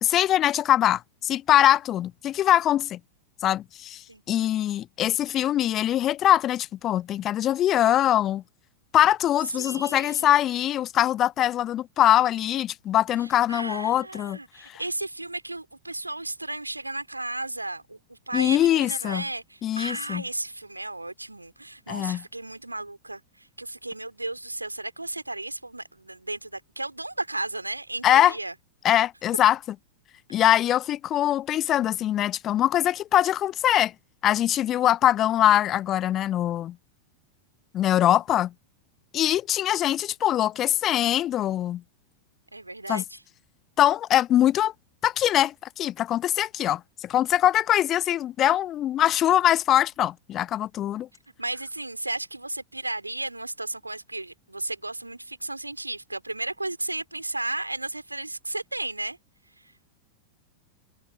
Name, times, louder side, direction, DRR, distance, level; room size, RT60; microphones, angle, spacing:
voice 1, 0.0-3.0 3.4-8.4 8.9-14.8 18.3-19.2 19.6-20.2 21.9-22.2 28.0-28.3 28.8-29.6 30.3-33.9 34.2-36.8 37.7-38.5 39.1-41.8 42.9-43.0 43.8-44.7 45.0-51.1, left 12 dB, 30° left, 0.8 m, -22 dB
voice 2, 9.5-10.4 13.2-28.5 42.5-43.2 51.4-59.2 59.6-59.7, right 2 dB, 85° right, 3.3 m, -34 dB
figure-of-eight pair, 90°, 0 cm